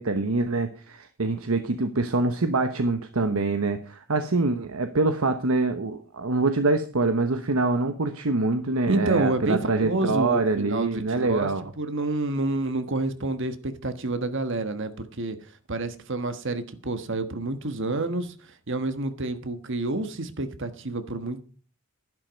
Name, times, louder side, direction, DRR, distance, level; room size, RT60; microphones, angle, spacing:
voice 1, 0.0-11.6, right 3 dB, 80° right, 1.0 m, -25 dB
voice 2, 8.9-11.5 11.8-21.4, right 2 dB, 60° right, 1.4 m, -29 dB
11.0 x 11.0 x 5.2 m
head